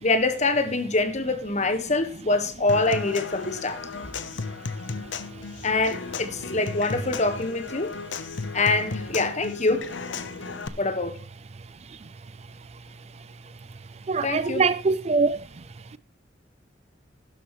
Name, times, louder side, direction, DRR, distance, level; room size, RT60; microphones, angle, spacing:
voice 1, 0.0-3.8 5.6-8.0 8.5-9.9 10.8-11.2 14.2-14.7, left 3 dB, 40° left, 1.4 m, -25 dB
Human voice / Acoustic guitar / Percussion, 2.7-10.7, left 4 dB, 85° left, 0.9 m, -34 dB
voice 2, 14.1-15.4, right 4 dB, 35° right, 0.4 m, -23 dB
12.0 x 11.5 x 3.1 m
head